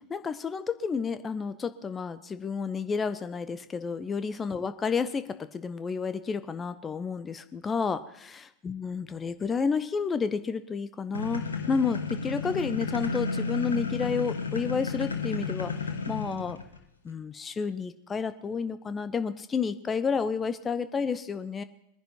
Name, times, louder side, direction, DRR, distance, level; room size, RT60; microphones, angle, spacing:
voice 1, 0.1-5.2 5.5-15.7 16.1-16.6 17.0-21.6, left 5 dB, 20° left, 12 dB, 0.9 m, -30 dB
sound 1, 11.1-16.8, left 5 dB, 75° left, 1.5 m, -32 dB
22.0 x 10.5 x 4.5 m, 0.81 s
figure-of-eight pair, 90°, 0 cm